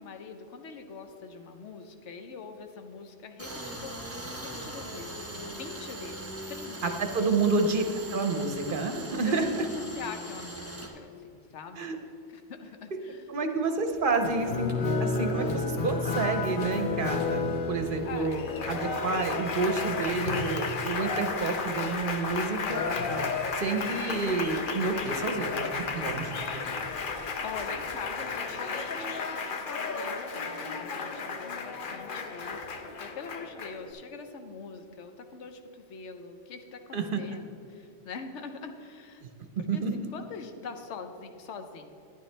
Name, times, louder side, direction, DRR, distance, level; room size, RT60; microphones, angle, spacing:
voice 1, 0.0-4.1 4.4-7.3 9.2-11.9 12.3-13.3 18.0-18.7 27.4-39.2 39.7-41.9, left 5 dB, 75° left, 6 dB, 1.1 m, -43 dB
Tools, 3.4-10.9, right 1 dB, 15° right, 1.0 m, -40 dB
voice 2, 6.8-7.8 8.1-9.7 11.8-12.0 13.3-14.7 15.0-22.8 23.6-26.6 36.9-37.2 39.2-39.3 39.6-39.9, right 3 dB, 55° right, 6 dB, 0.8 m, -29 dB
sound 1, 13.8-28.0, equal, 20° left, 0.9 m, -50 dB
Applause, 14.2-33.9, left 4 dB, 55° left, 0.8 m, -32 dB
11.5 x 10.5 x 3.3 m, 2.7 s
omnidirectional pair, 1.2 m